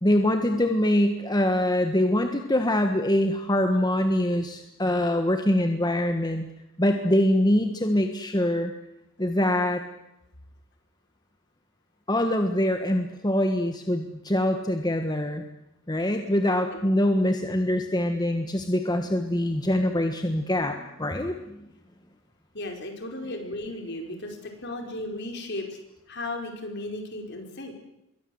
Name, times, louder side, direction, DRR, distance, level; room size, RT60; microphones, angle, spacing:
voice 1, 0.0-6.5 6.8-8.7 9.2-9.8 12.1-15.4 15.9-21.7, left 1 dB, 20° left, 6 dB, 1.5 m, -24 dB
voice 2, 16.5-16.8 22.5-25.8 26.1-27.7, left 1 dB, 50° left, 4 dB, 5.1 m, -35 dB
27.5 x 23.0 x 8.0 m, 0.87 s
head